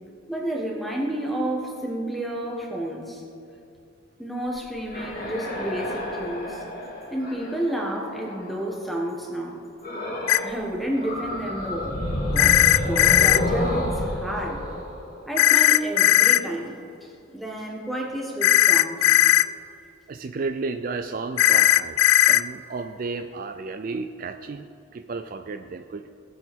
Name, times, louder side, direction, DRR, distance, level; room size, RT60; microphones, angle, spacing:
voice 1, 0.3-3.2 4.2-6.6 7.1-9.6 10.4-12.0 12.3-14.7 15.3-19.2, right 1 dB, ahead, -1 dB, 1.4 m, -31 dB
sound 1, 4.6-8.7 9.8-10.6 10.9-15.7, left 1 dB, 45° left, 2.1 m, -30 dB
sound 2, 10.3-10.4 12.4-13.4 15.4-16.4 18.4-19.4 21.4-22.4, left 13 dB, 90° left, 0.3 m, -17 dB
voice 2, 20.1-26.1, right 4 dB, 45° right, 8 dB, 0.3 m, -33 dB
19.0 x 7.7 x 3.7 m, 2.5 s
head